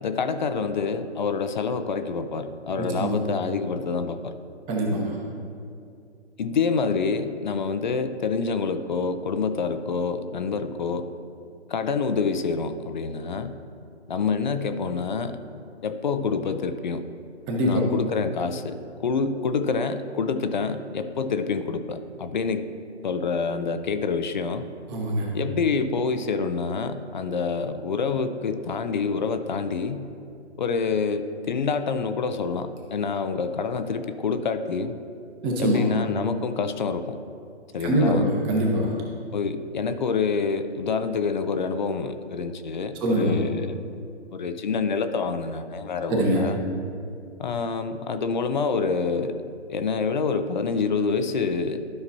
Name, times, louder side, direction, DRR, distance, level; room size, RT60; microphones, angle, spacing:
voice 1, 0.0-4.4 6.4-11.1 11.7-13.5 14.1-15.4 15.8-17.0 17.6-22.6 23.0-24.7 25.3-30.1 30.6-34.9 35.6-37.2 37.7-38.2 39.3-43.8 44.3-46.6 47.4-49.4 49.7-51.8, left 5 dB, 45° left, 9 dB, 0.5 m, -27 dB
voice 2, 4.7-5.1 17.5-17.9 24.9-25.3 35.4-35.8 37.8-38.9 43.0-43.3 46.1-46.5, equal, 15° right, -2 dB, 1.0 m, -23 dB
12.5 x 5.8 x 2.8 m, 2.4 s
figure-of-eight pair, 145°, 34 cm